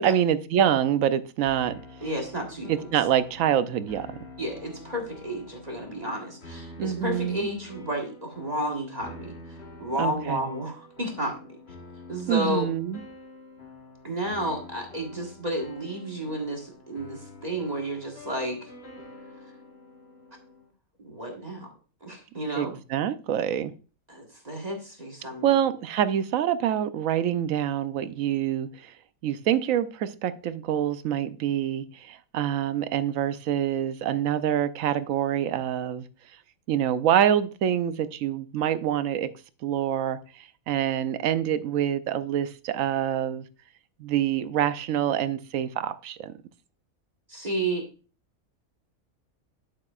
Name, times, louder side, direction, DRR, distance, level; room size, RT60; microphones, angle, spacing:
voice 1, 0.0-1.8 2.7-4.1 6.8-7.5 10.0-10.4 12.3-13.0 22.6-23.7 25.4-28.9 29.2-36.1 36.7-39.3 39.6-43.4 44.0-46.3, right 10 dB, 70° right, 1.0 m, -26 dB
sound 1, 1.5-20.7, left 2 dB, 50° left, 1.7 m, -47 dB
voice 2, 2.0-2.9 4.4-11.6 12.1-12.7 14.0-18.7 21.0-21.7 22.0-22.8 24.1-25.6 47.3-47.9, right 1 dB, 30° right, 1.5 m, -32 dB
9.6 x 7.5 x 2.4 m
omnidirectional pair, 1.5 m